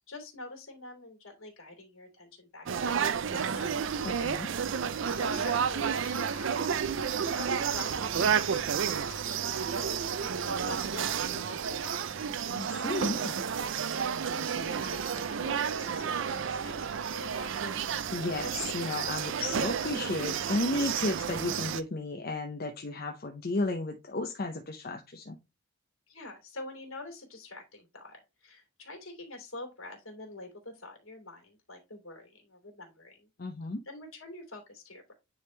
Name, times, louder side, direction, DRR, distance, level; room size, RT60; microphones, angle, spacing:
voice 1, 0.1-3.9 5.0-12.4 14.0-18.0 26.1-33.3 33.8-35.1, left 2 dB, 70° left, 2.8 m, -46 dB
sound 1, 2.7-21.8, right 7 dB, 60° right, 0.4 m, -31 dB
voice 2, 4.0-4.5 12.5-13.4 18.1-25.4 33.4-33.8, left 2 dB, 45° left, 0.6 m, -33 dB
9.5 x 3.5 x 3.2 m
head